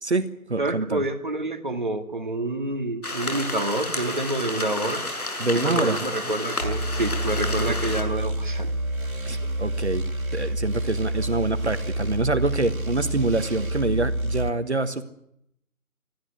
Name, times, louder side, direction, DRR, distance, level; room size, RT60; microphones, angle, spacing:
voice 1, 0.0-1.0 5.4-6.0 9.2-10.0 10.3-15.0, right 3 dB, 50° right, 11 dB, 1.5 m, -26 dB
voice 2, 0.6-5.0 5.6-8.7 13.0-13.1, right 2 dB, 35° right, 6 dB, 2.0 m, -28 dB
sound 1, 3.0-8.0, left 2 dB, 90° left, 6.6 m, -31 dB
sound 2, 6.6-14.5, right 1 dB, 70° right, 3.3 m, -28 dB
24.5 x 15.5 x 9.7 m, 0.76 s
figure-of-eight pair, 170°, 43 cm